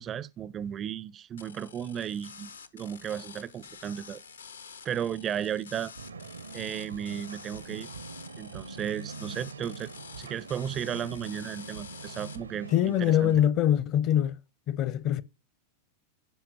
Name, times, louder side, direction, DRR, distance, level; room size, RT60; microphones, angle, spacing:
voice 1, 0.0-4.2 4.8-5.9 6.5-7.9 8.4-9.9 10.2-13.4, right 9 dB, 25° right, 0.4 m, -35 dB
sound 1, 1.4-12.4, left 6 dB, 70° left, 0.9 m, -48 dB
sound 2, 6.0-13.5, right 4 dB, 75° right, 0.6 m, -43 dB
voice 2, 12.7-14.4 14.7-15.2, left 10 dB, 40° left, 0.7 m, -24 dB
15.5 x 5.7 x 2.8 m
figure-of-eight pair, 90°, 0 cm